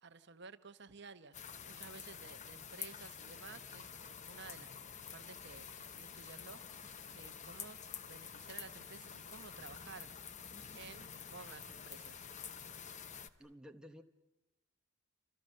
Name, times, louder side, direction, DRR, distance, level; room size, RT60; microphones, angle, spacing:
voice 1, 0.0-1.4 1.6-3.9 4.3-4.8 5.1-6.8 7.1-7.8 8.1-10.1 10.7-12.2, right 4 dB, 55° right, 10 dB, 1.0 m, -54 dB
sound 1, 1.3-13.3, left 7 dB, 35° left, 0.8 m, -49 dB
voice 2, 13.4-14.0, equal, 5° right, 4 dB, 0.9 m, -53 dB
28.5 x 26.5 x 6.5 m, 0.98 s
head